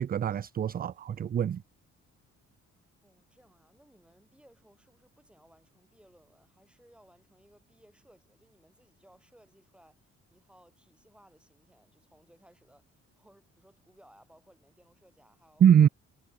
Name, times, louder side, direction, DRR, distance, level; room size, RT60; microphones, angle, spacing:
voice 1, 0.0-1.6 15.6-15.9, right 9 dB, 30° right, 0.4 m, -23 dB
voice 2, 3.0-15.6, equal, 5° right, 6.0 m, -62 dB
cardioid pair, 90°, 30 cm